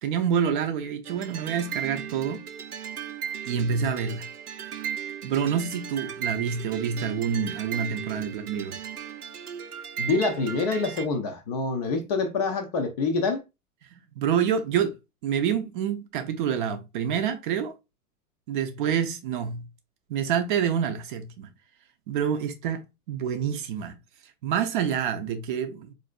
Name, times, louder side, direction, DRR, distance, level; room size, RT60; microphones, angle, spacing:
voice 1, 0.0-2.4 3.5-4.3 5.2-8.8 13.9-14.9 15.2-17.7 18.5-19.6 20.1-21.5 22.1-23.9 24.4-25.9, right 8 dB, 35° right, 0.5 m, -27 dB
sound 1, 1.0-11.1, right 8 dB, 85° right, 0.6 m, -36 dB
voice 2, 10.0-13.4, left 3 dB, 30° left, 0.4 m, -26 dB
4.1 x 2.6 x 2.3 m
figure-of-eight pair, 100°, 45 cm